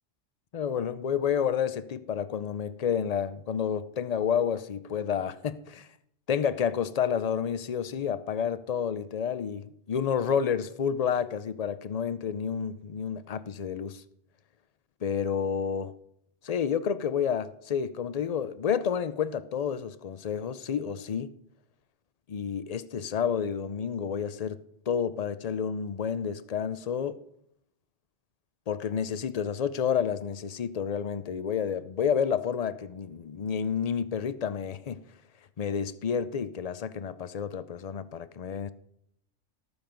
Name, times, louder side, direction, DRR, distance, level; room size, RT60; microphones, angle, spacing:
voice 1, 0.5-5.9 6.3-14.0 15.0-15.9 16.4-21.3 22.3-24.6 24.9-27.2 28.7-35.0 35.6-38.7, left 7 dB, 45° left, 0.5 m, -30 dB
18.5 x 7.1 x 5.2 m
omnidirectional pair, 1.3 m